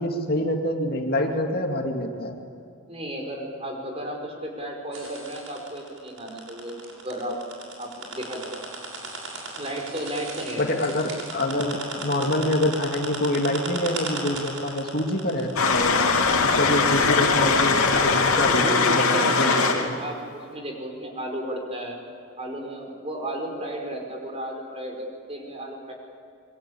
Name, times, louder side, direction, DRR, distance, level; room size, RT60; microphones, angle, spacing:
voice 1, 0.0-2.3 10.6-16.0 16.4-19.9, left 1 dB, 45° left, 3 dB, 2.4 m, -26 dB
voice 2, 2.9-7.4 7.8-8.7 9.6-10.7 18.4-22.0 22.4-25.9, right 1 dB, 30° right, 2 dB, 5.2 m, -33 dB
sound 1, 4.9-19.3, right 3 dB, 70° right, 6.8 m, -37 dB
sound 2, 15.6-19.9, left 4 dB, 90° left, 3.1 m, -21 dB
27.0 x 23.5 x 8.6 m, 2.4 s
head